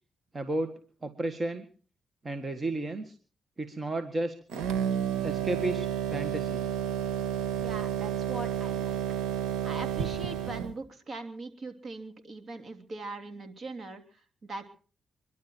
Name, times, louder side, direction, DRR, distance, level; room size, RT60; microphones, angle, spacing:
voice 1, 0.3-0.7 1.0-1.7 2.2-3.2 3.6-4.3 5.2-6.7, right 2 dB, 35° right, 7 dB, 2.0 m, -32 dB
sound 1, 4.5-10.7, right 9 dB, 85° right, 2.1 m, -31 dB
voice 2, 7.6-9.0 9.6-14.7, right 2 dB, 50° right, 6 dB, 3.1 m, -41 dB
25.0 x 12.0 x 4.6 m, 0.41 s
supercardioid pair, 60°, 0 cm